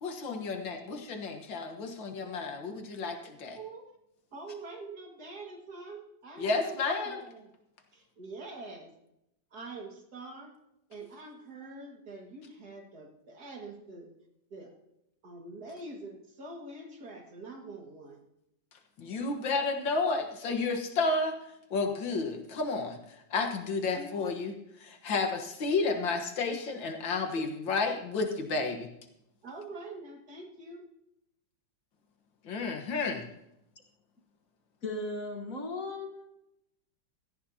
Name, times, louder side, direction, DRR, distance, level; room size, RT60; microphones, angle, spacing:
voice 1, 0.0-3.6 6.4-7.2 19.0-21.3 21.7-23.0 23.3-24.5 24.8-28.9 32.4-33.2, left 3 dB, 75° left, 4 dB, 2.1 m, -31 dB
voice 2, 3.5-3.9 4.3-7.5 7.9-8.9 9.5-10.6 10.9-14.1 14.5-14.7 15.2-18.2 24.0-24.1 27.7-27.8 29.4-30.8, right 2 dB, 55° right, 1 dB, 2.5 m, -45 dB
voice 3, 34.8-36.3, left 2 dB, 45° left, 3 dB, 1.7 m, -36 dB
17.0 x 13.5 x 2.9 m, 0.82 s
omnidirectional pair, 2.1 m